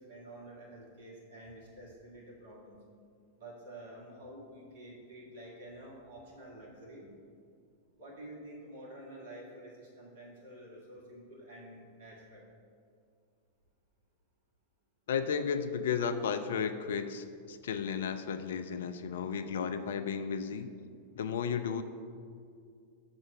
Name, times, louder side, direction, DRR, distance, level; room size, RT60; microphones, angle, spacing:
voice 1, 0.0-2.8 3.4-7.1 8.0-12.5, right 1 dB, 60° right, -3 dB, 1.7 m, -49 dB
voice 2, 15.1-20.7 21.2-21.8, left 6 dB, 60° left, 10 dB, 0.4 m, -33 dB
6.2 x 3.7 x 5.9 m, 2.3 s
figure-of-eight pair, 90°, 0 cm